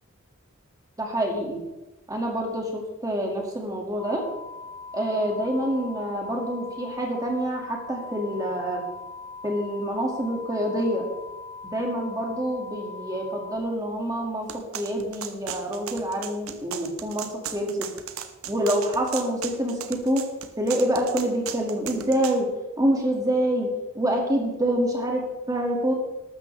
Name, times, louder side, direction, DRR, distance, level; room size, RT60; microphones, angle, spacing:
voice 1, 1.0-1.6 2.1-4.2 4.9-8.8 9.4-11.1 11.6-17.9 18.5-20.2 20.6-22.5 22.8-25.9, equal, 15° right, 0 dB, 2.3 m, -26 dB
sound 1, 4.0-13.6, left 4 dB, 10° left, 0.5 m, -41 dB
sound 2, 14.5-22.4, right 8 dB, 85° right, 1.0 m, -36 dB
14.0 x 12.5 x 3.5 m, 1.1 s
head